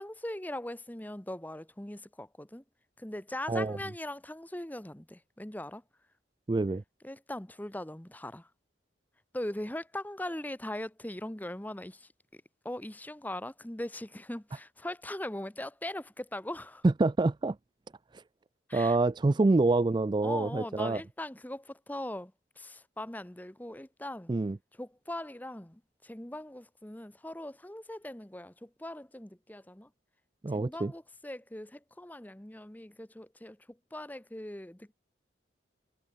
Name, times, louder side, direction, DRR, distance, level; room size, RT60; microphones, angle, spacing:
voice 1, 0.0-2.6 3.0-5.8 7.0-8.5 9.3-12.1 12.6-16.8 18.7-19.0 19.4-19.5 20.2-24.3 24.7-29.9 30.5-34.9, left 1 dB, 10° left, 0.8 m, -40 dB
voice 2, 6.5-6.8 16.8-17.6 18.7-21.0 24.3-24.6 30.4-30.9, right 2 dB, 25° right, 0.3 m, -26 dB
head